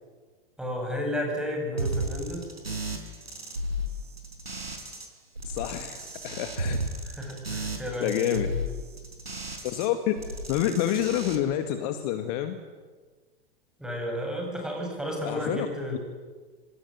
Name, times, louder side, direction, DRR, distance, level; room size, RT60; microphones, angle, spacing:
voice 1, 0.6-2.5 7.0-8.7 13.8-16.0, equal, ahead, 1 dB, 7.9 m, -32 dB
sound 1, 1.8-5.1 5.3-9.9 10.1-11.4, right 1 dB, 80° right, 4.7 m, -34 dB
voice 2, 5.4-6.8 7.6-7.7 8.0-8.6 9.6-10.2 10.5-12.6 15.2-16.0, left 11 dB, 40° left, 8 dB, 1.9 m, -28 dB
26.0 x 25.0 x 9.3 m, 1.4 s
figure-of-eight pair, 100°, 30 cm